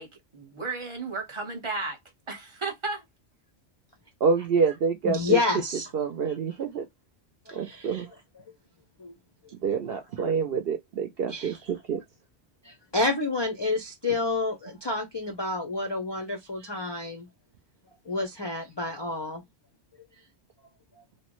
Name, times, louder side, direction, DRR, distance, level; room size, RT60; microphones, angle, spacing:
voice 1, 0.0-2.0 2.3-3.0, right 3 dB, 25° right, 0.9 m, -34 dB
voice 2, 4.2-5.4 5.9-6.9 7.5-8.1 9.6-12.0, right 5 dB, 60° right, 0.7 m, -27 dB
voice 3, 5.0-5.9 7.5-8.0 9.0-9.1 9.4-9.5 11.3-11.5 12.6-17.3 18.1-19.4, left 3 dB, 35° left, 0.4 m, -29 dB
3.0 x 2.1 x 2.9 m
omnidirectional pair, 1.3 m